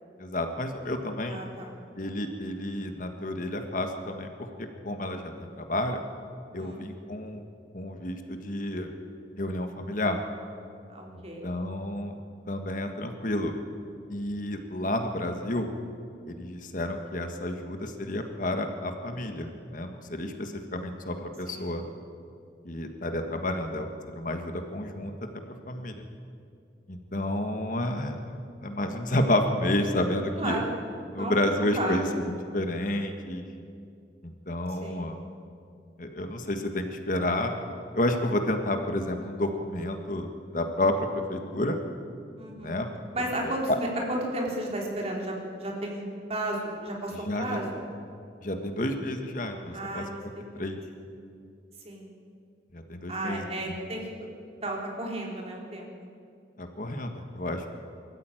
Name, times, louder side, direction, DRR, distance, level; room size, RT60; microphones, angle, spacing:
voice 1, 0.2-1.4 2.0-6.0 6.5-7.4 7.7-8.9 9.4-10.2 11.4-12.2 12.5-13.5 14.1-15.7 16.3-21.8 22.6-23.9 24.1-26.0 26.9-30.6 31.1-33.4 34.2-35.2 36.0-37.5 37.9-41.8 42.6-42.9 43.7-43.8 47.2-47.6 48.4-50.3 50.5-50.8 52.7-53.4 53.7-53.9 56.6-57.7, left 1 dB, 50° left, 5 dB, 1.6 m, -30 dB
voice 2, 1.3-1.7 6.6-6.8 10.9-11.5 21.5-21.7 27.1-27.4 30.4-30.7 31.2-32.0 34.8-35.1 42.4-42.8 43.1-47.8 49.7-50.6 51.8-52.1 53.1-54.3 54.6-55.9, right 1 dB, 35° right, -1 dB, 3.7 m, -34 dB
23.5 x 14.0 x 9.1 m, 2.4 s
head